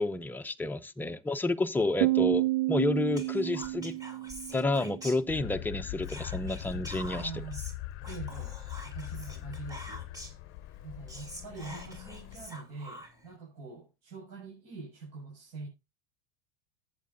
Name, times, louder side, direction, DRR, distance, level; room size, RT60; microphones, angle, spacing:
voice 1, 0.0-4.0 4.5-7.3, left 2 dB, 5° left, 0.6 m, -30 dB
Piano, 2.0-5.4, right 19 dB, 85° right, 0.6 m, -30 dB
Whispering, 3.1-5.7 6.0-10.5 10.8-10.9 11.1-13.3, equal, 10° right, 3.0 m, -46 dB
sound 1, 5.3-12.5, left 15 dB, 45° left, 0.7 m, -41 dB
voice 2, 7.1-7.6 8.0-8.6 8.8-10.0 10.8-15.7, right 4 dB, 60° right, 6.3 m, -44 dB
14.5 x 8.6 x 2.6 m
supercardioid pair, 125°, 29 cm